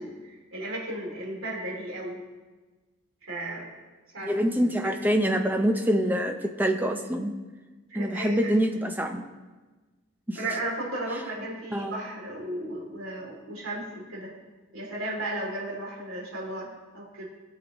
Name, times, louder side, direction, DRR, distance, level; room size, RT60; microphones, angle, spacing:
voice 1, 0.0-2.2 3.2-3.7 4.1-4.3 7.9-8.5 10.3-14.3 14.7-17.3, right 1 dB, 75° right, -3 dB, 2.9 m, -35 dB
voice 2, 4.3-7.3 7.9-9.3 10.3-10.4 11.7-11.9, equal, 10° right, 5 dB, 0.6 m, -25 dB
18.5 x 6.7 x 3.0 m, 1.3 s
head